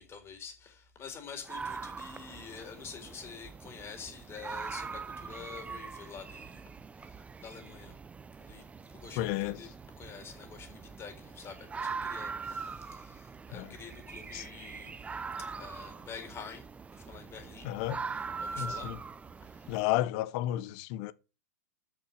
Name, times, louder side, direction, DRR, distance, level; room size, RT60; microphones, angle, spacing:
voice 1, 0.0-6.6 7.0-7.9 8.3-9.7 10.0-15.0 15.4-16.7 16.9-17.7 18.4-19.0 19.4-19.7, left 6 dB, 25° left, 4.3 m, -47 dB
sound 1, 1.4-19.8, right 5 dB, 15° right, 0.6 m, -42 dB
voice 2, 9.2-9.6 13.5-13.7 14.3-14.5 17.6-18.0 18.5-19.0 19.7-21.1, left 14 dB, 50° left, 0.8 m, -32 dB
8.3 x 6.7 x 7.4 m
hypercardioid pair, 105°, 9 cm